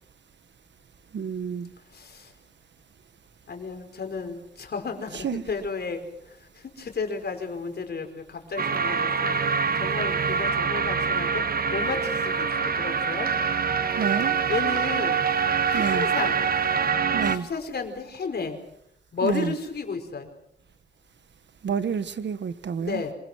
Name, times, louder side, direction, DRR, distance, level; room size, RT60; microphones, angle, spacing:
voice 1, 1.1-1.7 5.2-5.4 13.9-14.4 15.7-16.1 17.1-17.5 19.2-19.5 21.6-23.0, right 7 dB, 80° right, 13 dB, 1.4 m, -29 dB
voice 2, 1.9-2.3 3.5-11.4 11.7-13.3 14.2-15.2 15.6-16.4 17.2-18.6 19.1-20.3 22.8-23.1, left 4 dB, 60° left, 5 dB, 4.9 m, -33 dB
sound 1, 8.6-17.4, right 6 dB, 55° right, 1.3 m, -25 dB
27.5 x 24.5 x 6.3 m, 0.74 s
wide cardioid pair, 150°, 18 cm